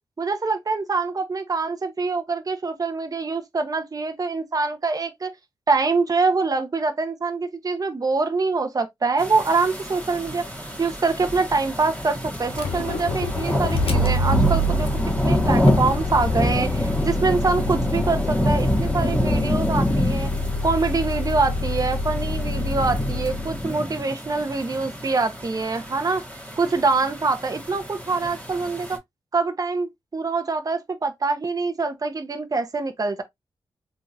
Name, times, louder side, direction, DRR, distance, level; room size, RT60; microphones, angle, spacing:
voice 1, 0.2-5.3 5.7-10.4 10.8-14.9 15.2-20.3 20.6-26.2 26.6-29.0 29.3-33.2, right 4 dB, 35° right, 0.9 m, -24 dB
sound 1, 9.2-29.0, equal, 10° left, 1.7 m, -27 dB
Motor vehicle (road), 12.5-23.7, left 1 dB, 70° left, 0.8 m, -26 dB
3.7 x 2.8 x 2.6 m
cardioid pair, 60°, 10 cm